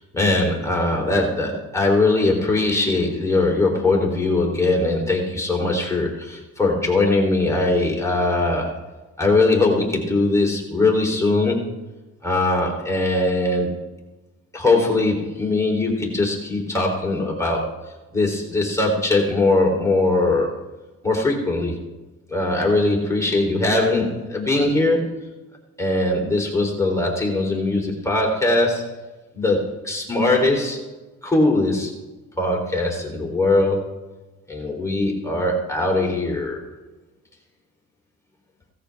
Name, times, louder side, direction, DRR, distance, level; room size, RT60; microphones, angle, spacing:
voice 1, 0.0-11.7 12.2-13.9 14.5-17.7 18.1-20.6 21.0-21.7 22.3-25.1 25.8-28.9 29.3-30.8 31.2-32.0 32.4-33.9 34.5-36.6, left 2 dB, 10° left, -1 dB, 3.4 m, -21 dB
17.5 x 13.5 x 3.5 m, 1.1 s
cardioid pair, 90°, 30 cm